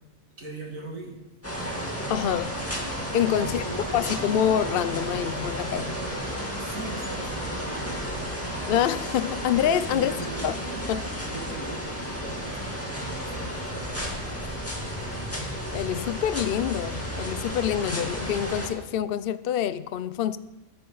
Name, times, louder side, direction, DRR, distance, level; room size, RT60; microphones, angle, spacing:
voice 1, 0.4-1.1 1.6-1.7 3.4-4.4 6.6-8.5 9.9-10.5 11.1-15.3, right 3 dB, 70° right, 3.0 m, -41 dB
sound 1, 1.4-18.7, equal, 10° left, 2.5 m, -32 dB
voice 2, 2.1-2.6 3.1-3.6 3.9-6.0 8.7-10.2 10.4-10.6 10.9-11.2 15.7-20.4, left 10 dB, 65° left, 0.5 m, -26 dB
21.5 x 10.5 x 4.0 m
omnidirectional pair, 1.5 m